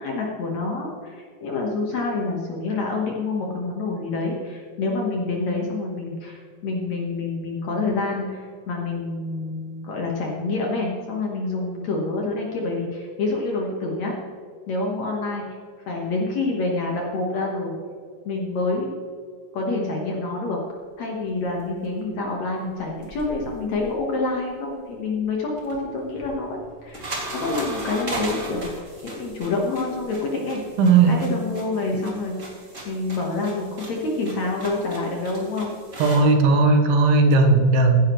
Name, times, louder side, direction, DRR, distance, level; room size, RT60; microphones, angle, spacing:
voice 1, 0.0-14.2 14.7-15.4 15.9-17.8 18.3-19.0 19.5-20.6 21.0-30.6 31.0-32.4 32.9-35.7, left 3 dB, 60° left, -1 dB, 2.1 m, -27 dB
sound 1, 22.9-24.3 25.5-36.2, right 1 dB, 25° right, 1.9 m, -37 dB
voice 2, 30.8-31.2 36.0-38.1, right 3 dB, 80° right, 4 dB, 3.1 m, -16 dB
16.0 x 10.5 x 3.1 m, 2.1 s
omnidirectional pair, 4.6 m